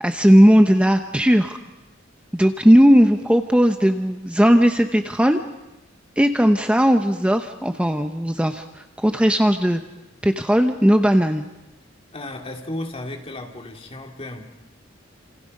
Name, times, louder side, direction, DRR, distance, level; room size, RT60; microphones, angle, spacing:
voice 1, 0.0-1.6 2.3-5.4 6.2-9.8 10.2-11.5, equal, 5° right, 6 dB, 0.8 m, -17 dB
voice 2, 12.1-14.5, left 1 dB, 30° left, 2 dB, 2.5 m, -34 dB
30.0 x 27.5 x 5.4 m, 0.96 s
head